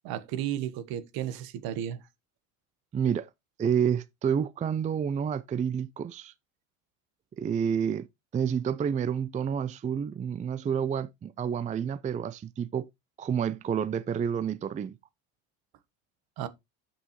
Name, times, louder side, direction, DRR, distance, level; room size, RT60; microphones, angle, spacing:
voice 1, 0.0-2.0 16.4-16.5, right 11 dB, 60° right, 1.3 m, -33 dB
voice 2, 2.9-3.3 3.6-6.3 7.4-8.1 8.3-12.9 13.2-15.0, right 7 dB, 20° right, 0.4 m, -29 dB
8.0 x 6.8 x 3.0 m
supercardioid pair, 90°, 41 cm